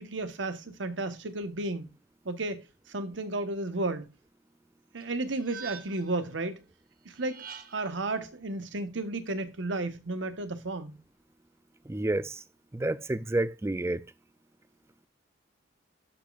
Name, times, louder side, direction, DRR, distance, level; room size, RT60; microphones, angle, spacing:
voice 1, 0.0-1.9 2.2-4.1 4.9-6.6 7.0-7.5 7.7-11.0, right 2 dB, 75° right, 1.2 m, -33 dB
sound 1, 5.0-6.2 7.1-8.0, right 7 dB, 50° right, 0.9 m, -45 dB
voice 2, 11.9-12.4 12.7-14.1, right 2 dB, 15° right, 0.4 m, -29 dB
12.0 x 5.2 x 2.4 m
head